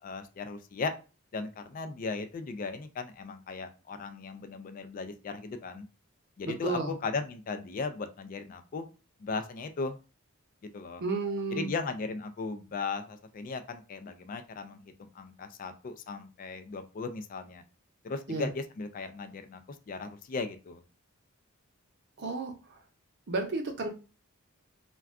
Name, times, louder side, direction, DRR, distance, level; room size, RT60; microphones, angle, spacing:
voice 1, 0.0-0.9 1.3-5.9 6.4-8.8 9.2-10.0 10.7-11.0 11.5-17.6 18.0-19.6 19.9-20.8, left 4 dB, 40° left, 8 dB, 0.3 m, -37 dB
voice 2, 6.4-6.9 11.0-11.7 18.3-18.5 22.2-22.5 23.3-23.9, right 3 dB, 55° right, 4 dB, 0.7 m, -32 dB
2.3 x 2.2 x 3.5 m, 0.32 s
head